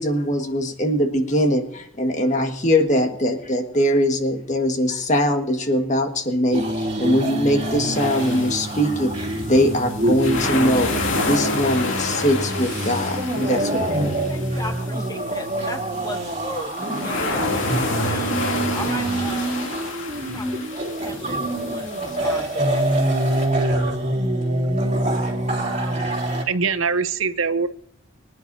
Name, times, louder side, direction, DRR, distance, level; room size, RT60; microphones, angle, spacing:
voice 1, 0.0-10.9 11.2-14.1, equal, 35° left, 5 dB, 1.6 m, -21 dB
sound 1, 6.5-26.4, right 1 dB, 35° right, 3.3 m, -25 dB
sound 2, 7.9-23.4, left 3 dB, 65° left, 2.7 m, -30 dB
voice 2, 14.3-18.3 18.7-19.6 20.3-20.7 21.0-22.8, left 1 dB, 15° left, 4 dB, 1.8 m, -36 dB
voice 3, 25.8-26.1 26.5-27.7, right 5 dB, 75° right, 12 dB, 0.9 m, -23 dB
24.5 x 10.5 x 2.7 m, 0.67 s
head